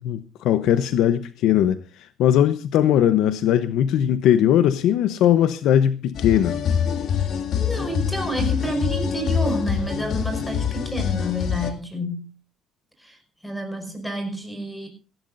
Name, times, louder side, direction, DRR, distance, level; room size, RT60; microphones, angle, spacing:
voice 1, 0.0-6.6, left 10 dB, 80° left, 0.8 m, -20 dB
sound 1, 6.1-11.7, left 7 dB, 60° left, 2.3 m, -25 dB
voice 2, 7.6-12.3 13.0-13.2 13.4-14.9, right 1 dB, 5° left, 5.3 m, -29 dB
18.0 x 16.0 x 2.6 m
cardioid pair, 120°, 0 cm